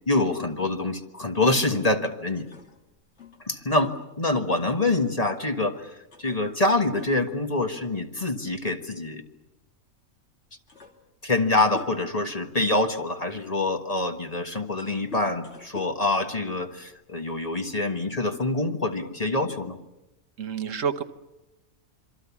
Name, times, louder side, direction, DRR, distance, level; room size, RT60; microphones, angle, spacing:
voice 1, 0.1-2.5 3.4-5.9 6.2-9.2 11.2-19.8, left 2 dB, 30° left, 5 dB, 1.5 m, -25 dB
sound 1, 2.3-5.4 5.7-5.8 6.1-8.3 8.6-8.8 9.8-9.9 10.4-12.3 12.9-17.0, left 4 dB, 55° left, 2.8 m, -48 dB
voice 2, 20.4-21.0, right 7 dB, 65° right, 8 dB, 1.4 m, -28 dB
27.0 x 25.0 x 7.2 m, 0.97 s
omnidirectional pair, 1.4 m